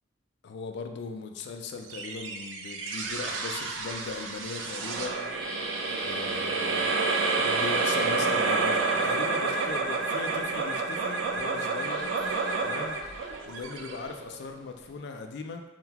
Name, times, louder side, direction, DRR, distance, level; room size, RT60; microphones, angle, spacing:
voice 1, 0.4-5.3 5.9-12.1 12.6-13.0 13.5-15.6, left 4 dB, 65° left, 5 dB, 0.3 m, -39 dB
sound 1, 1.9-14.5, right 4 dB, 85° right, 0.4 m, -29 dB
sound 2, 3.0-15.0, equal, 5° left, 0.5 m, -44 dB
3.6 x 2.2 x 2.8 m, 1.1 s
head